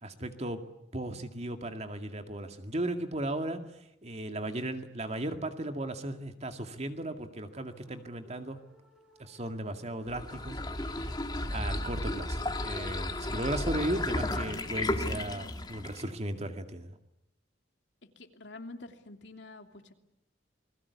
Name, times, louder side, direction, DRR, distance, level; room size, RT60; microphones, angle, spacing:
voice 1, 0.0-0.6 0.9-3.6 4.0-8.6 9.2-11.1 11.5-16.9, right 1 dB, 35° right, 7 dB, 2.2 m, -36 dB
sound 1, 7.5-15.2, left 1 dB, 5° right, 5.9 m, -56 dB
sound 2, 10.1-16.1, left 1 dB, 20° left, 2.0 m, -33 dB
voice 2, 18.2-19.9, left 2 dB, 70° left, 6 dB, 2.8 m, -47 dB
29.0 x 21.0 x 8.4 m, 0.84 s
head